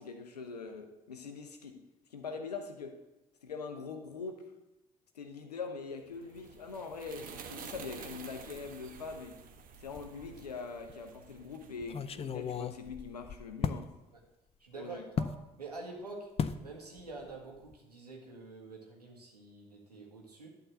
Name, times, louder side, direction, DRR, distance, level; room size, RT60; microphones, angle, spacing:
voice 1, 0.0-3.0 3.4-4.5 5.1-9.4 9.8-13.9 14.7-15.1, left 4 dB, 85° left, 6 dB, 0.9 m, -43 dB
sound 1, 6.1-12.7, right 6 dB, 45° right, 1.1 m, -50 dB
sound 2, 9.9-10.5 10.9-11.0 11.8-13.9 15.2-15.4 16.4-16.7 17.0-17.3 17.6-17.7, left 6 dB, 30° left, 0.5 m, -36 dB
voice 2, 14.6-15.3 15.6-16.3 16.6-20.5, right 3 dB, 90° right, -1 dB, 1.5 m, -46 dB
11.0 x 3.9 x 7.7 m, 0.97 s
figure-of-eight pair, 50°, 20 cm